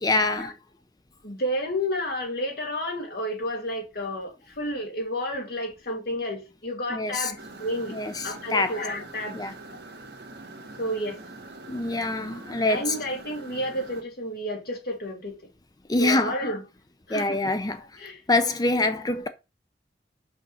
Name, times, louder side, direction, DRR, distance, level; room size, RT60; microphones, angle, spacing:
voice 1, 0.0-0.5 6.9-7.3 7.9-8.8 9.3-9.5 11.7-13.0 15.9-16.4 17.1-17.8 18.3-19.3, left 2 dB, 20° left, 0.6 m, -25 dB
voice 2, 1.2-9.4 10.8-11.2 12.7-15.4 16.0-16.6 17.1-17.5 18.0-18.2, equal, 55° left, 2.6 m, -31 dB
sound 1, 7.4-14.0, right 2 dB, 60° right, 1.5 m, -44 dB
6.2 x 5.4 x 5.6 m
head